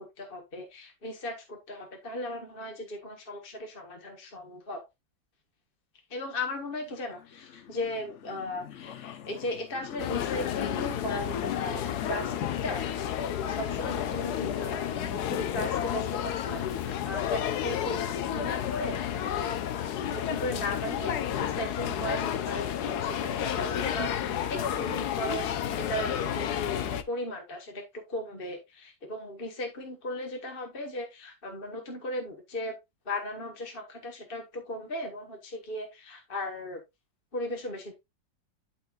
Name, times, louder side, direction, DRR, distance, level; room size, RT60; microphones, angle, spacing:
voice 1, 0.0-4.9 6.1-19.4 20.1-32.8 33.0-36.8 37.3-37.9, left 1 dB, 30° left, 3 dB, 1.4 m, -37 dB
sound 1, 6.4-12.8, left 9 dB, 80° left, 0.6 m, -42 dB
sound 2, 10.0-27.0, left 9 dB, 65° left, 1.2 m, -31 dB
12.5 x 4.4 x 2.4 m, 0.20 s
omnidirectional pair, 2.1 m